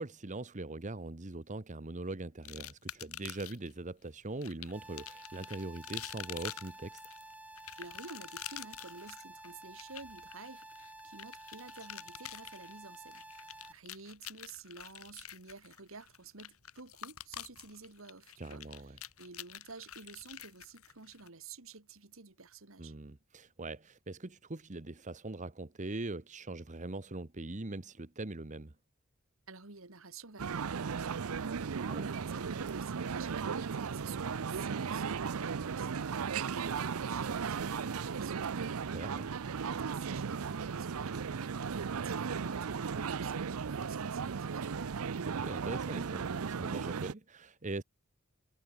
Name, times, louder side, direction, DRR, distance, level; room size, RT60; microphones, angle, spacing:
voice 1, 0.0-7.0 18.4-19.0 22.8-28.7 31.9-32.1 38.6-39.3 45.4-47.8, right 2 dB, 35° right, 1.1 m, -41 dB
sound 1, 2.5-3.7 4.4-21.3, left 11 dB, 85° left, 4.8 m, -47 dB
sound 2, 4.7-13.7, right 1 dB, 5° right, 2.2 m, -51 dB
voice 2, 7.8-22.9 29.5-39.0 39.5-45.0, right 4 dB, 65° right, 2.1 m, -51 dB
sound 3, 30.4-47.1, right 6 dB, 80° right, 0.6 m, -36 dB
head